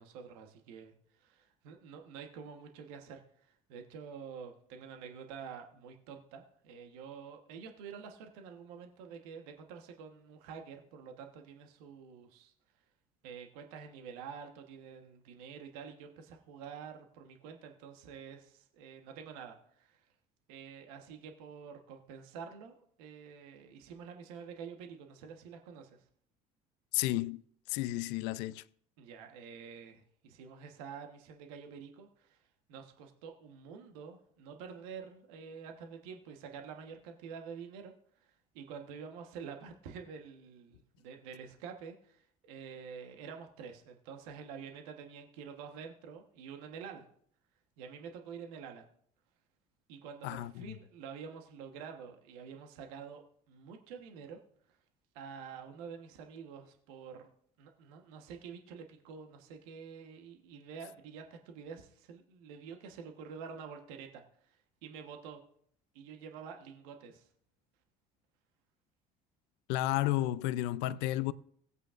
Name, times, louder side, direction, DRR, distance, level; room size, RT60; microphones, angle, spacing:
voice 1, 0.0-12.5 13.2-20.1 20.5-26.0 29.0-32.4 32.7-47.1 47.8-48.9 49.9-53.2 53.5-54.4 54.7-54.8 55.1-57.3 57.6-65.4 65.9-67.3, right 6 dB, 75° right, 1.2 m, -48 dB
voice 2, 26.9-27.4 27.7-28.6 50.2-50.8 69.7-71.3, left 15 dB, 70° left, 0.5 m, -32 dB
18.0 x 8.2 x 2.5 m
hypercardioid pair, 65°, 19 cm